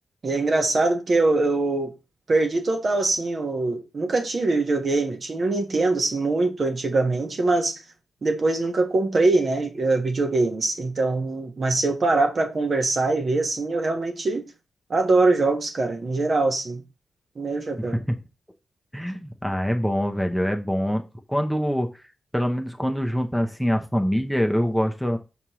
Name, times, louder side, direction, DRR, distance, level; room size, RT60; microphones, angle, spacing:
voice 1, 0.2-1.9 2.3-7.8 8.2-14.4 14.9-16.8 17.4-18.0, right 3 dB, 50° right, 1.3 m, -23 dB
voice 2, 17.8-18.2 18.9-21.0 21.3-22.0 22.3-25.2, equal, ahead, 0.8 m, -24 dB
6.1 x 5.3 x 3.1 m
cardioid pair, 85°, 0 cm